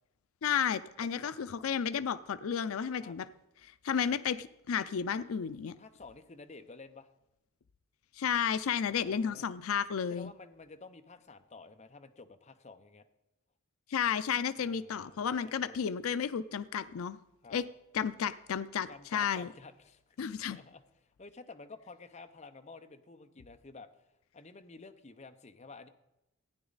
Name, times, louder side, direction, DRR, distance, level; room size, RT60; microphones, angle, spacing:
voice 1, 0.4-3.3 3.6-5.7 8.2-10.3 13.9-17.2 17.5-17.6 17.9-19.5 20.2-20.6, left 7 dB, 80° left, 14 dB, 0.4 m, -32 dB
voice 2, 5.8-7.1 8.9-9.5 10.0-13.0 14.6-15.8 17.4-17.6 18.9-20.8 21.2-24.1 24.3-25.9, left 3 dB, 35° left, 8 dB, 0.7 m, -51 dB
15.0 x 9.5 x 4.0 m, 0.95 s
head